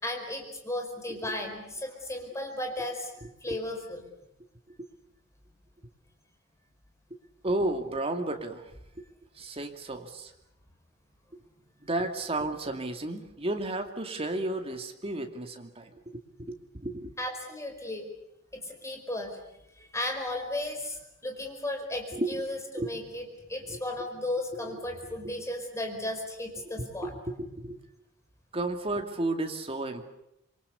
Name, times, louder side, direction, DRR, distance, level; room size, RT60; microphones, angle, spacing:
voice 1, 0.0-3.1 3.4-4.0 17.2-18.1 18.5-19.4 19.8-27.1, left 1 dB, 15° left, 4 dB, 4.9 m, -35 dB
voice 2, 1.1-1.4 3.5-3.6 4.8-4.9 7.4-8.7 9.4-10.3 11.3-11.4 11.8-17.1 22.1-22.5 22.8-22.9 23.7-23.8 24.7-24.8 26.6-27.8 28.5-30.0, right 2 dB, 30° right, 5 dB, 2.4 m, -33 dB
27.0 x 23.5 x 7.1 m, 0.85 s
head